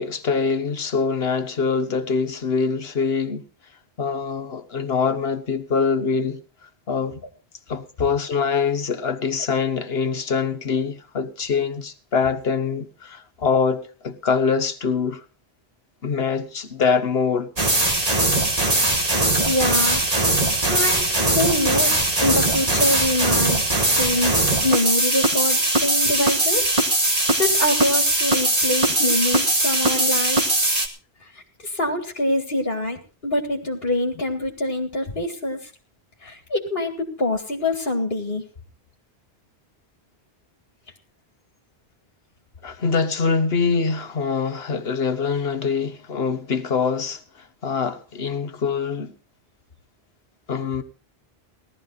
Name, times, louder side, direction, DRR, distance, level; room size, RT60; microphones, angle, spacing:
voice 1, 0.0-3.4 4.0-6.4 6.9-7.2 7.7-15.2 16.0-17.5 42.6-49.1 50.5-50.8, left 5 dB, 70° left, 1.5 m, -24 dB
sound 1, 17.6-30.9, right 2 dB, 35° right, 2.3 m, -20 dB
voice 2, 19.5-20.0 20.7-23.6 24.0-24.4 24.6-26.7 27.4-30.5 31.6-35.7 36.2-38.4, left 1 dB, 55° left, 2.2 m, -25 dB
18.0 x 12.5 x 4.1 m
omnidirectional pair, 1.1 m